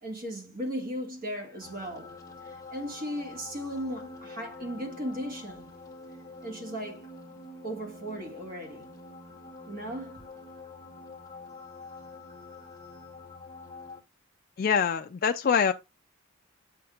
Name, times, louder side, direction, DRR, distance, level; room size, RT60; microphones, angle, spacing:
voice 1, 0.0-2.2 2.4-5.7 6.4-7.1 7.6-8.9 9.7-10.3, equal, 40° right, 1.7 m, -36 dB
sound 1, 1.6-14.0, left 3 dB, 15° left, 1.2 m, -46 dB
voice 2, 14.6-15.7, left 6 dB, 45° left, 0.3 m, -24 dB
7.6 x 5.7 x 2.4 m
head